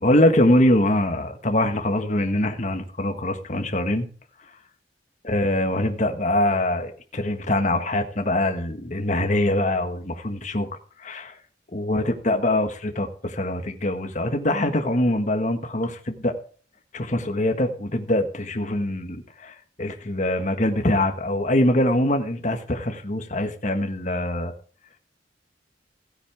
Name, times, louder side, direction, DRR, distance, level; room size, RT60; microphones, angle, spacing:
voice 1, 0.0-4.1 5.2-11.4 11.7-16.3 16.9-24.5, left 1 dB, 40° left, 1.6 m, -23 dB
16.0 x 9.8 x 3.5 m
head